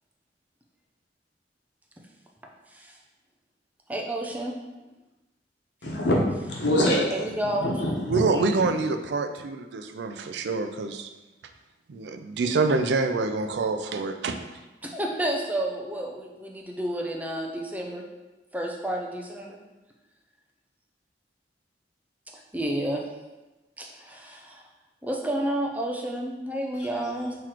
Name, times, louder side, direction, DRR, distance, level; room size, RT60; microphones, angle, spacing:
voice 1, 3.9-4.6 7.1-7.7 14.8-18.0 18.5-19.6 22.5-23.1 23.8-24.6 25.0-27.4, right 1 dB, 10° right, 0 dB, 0.5 m, -30 dB
voice 2, 5.8-6.2 6.5-7.0 7.4-8.4 26.8-26.9, left 1 dB, 85° left, -2 dB, 1.1 m, -25 dB
voice 3, 8.1-11.1 11.9-14.4, right 3 dB, 75° right, 7 dB, 0.4 m, -26 dB
4.0 x 3.1 x 4.4 m, 1.1 s
head